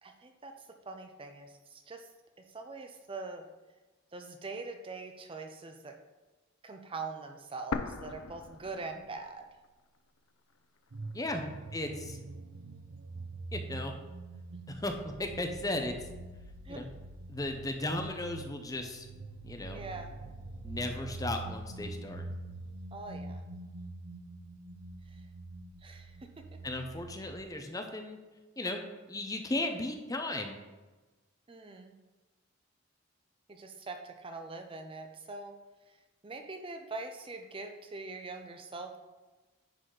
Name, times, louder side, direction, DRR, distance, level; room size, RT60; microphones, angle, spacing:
voice 1, 0.0-0.5 0.9-2.1 2.5-3.4 4.1-5.9 6.6-9.4 11.4-11.6 16.6-16.9 19.7-20.3 22.9-23.5 25.1-25.2 25.8-26.4 31.5-31.9 33.5-35.5 36.2-39.0, right 3 dB, 25° right, 5 dB, 0.5 m, -43 dB
sound 1, 7.7-9.7 9.9-10.0 10.8-11.7, left 4 dB, 90° left, 0.5 m, -39 dB
sound 2, 10.9-27.4, right 2 dB, 90° right, 0.7 m, -44 dB
voice 2, 11.7-12.2 13.5-13.9 14.7-15.9 16.7-16.9 17.3-19.1 19.4-19.8 20.6-22.2 26.6-28.2 28.6-28.8 29.1-30.6, left 2 dB, 15° left, 4 dB, 0.7 m, -35 dB
10.5 x 4.1 x 4.9 m, 1.2 s
head